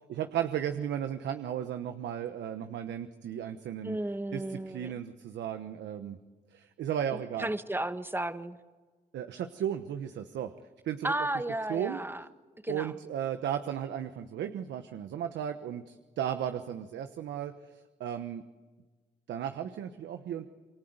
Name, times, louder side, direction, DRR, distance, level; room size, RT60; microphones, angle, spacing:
voice 1, 0.1-4.0 4.3-6.2 6.5-7.5 9.1-10.5 10.8-11.1 11.7-12.0 12.7-18.4 19.3-20.5, right 9 dB, 85° right, 8 dB, 1.2 m, -35 dB
voice 2, 3.8-4.9 7.1-8.6 11.0-12.2 12.6-12.9, right 1 dB, 10° right, 9 dB, 1.7 m, -34 dB
27.5 x 23.5 x 8.1 m, 1.3 s
cardioid pair, 60°, 18 cm